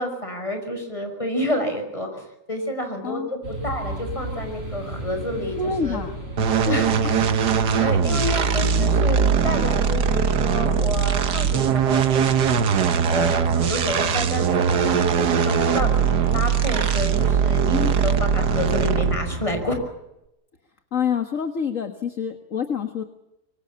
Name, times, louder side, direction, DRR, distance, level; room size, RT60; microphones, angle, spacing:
voice 1, 0.0-6.0 6.6-6.9 7.8-12.5 13.1-19.8, left 1 dB, 20° left, 5 dB, 6.0 m, -29 dB
sound 1, 3.4-19.8, right 1 dB, 35° right, 7.9 m, -33 dB
voice 2, 5.6-6.1 6.6-6.9 17.7-17.9 20.9-23.0, left 6 dB, 50° left, 7 dB, 2.0 m, -27 dB
sound 2, 6.4-19.3, right 7 dB, 90° right, 1.8 m, -21 dB
25.0 x 24.0 x 7.3 m, 0.87 s
omnidirectional pair, 1.7 m